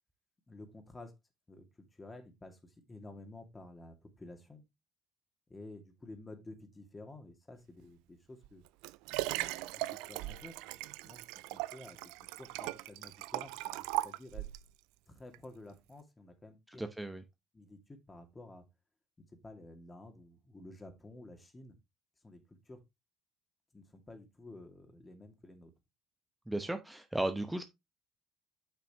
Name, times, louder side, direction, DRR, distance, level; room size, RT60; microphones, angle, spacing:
voice 1, 0.5-1.1 1.5-1.7 1.9-4.6 5.5-8.6 9.2-9.6 10.1-11.2 11.5-12.0 12.4-14.5 15.1-16.8 17.5-18.6 19.4-21.8 22.2-22.8 23.7-25.7, left 2 dB, 20° left, 2.3 m, -52 dB
Liquid, 8.4-14.7 15.3-15.4, right 18 dB, 75° right, 0.4 m, -38 dB
voice 2, 16.8-17.2 26.5-27.6, right 1 dB, 10° right, 0.9 m, -35 dB
8.8 x 5.9 x 3.0 m
hypercardioid pair, 60°, 0 cm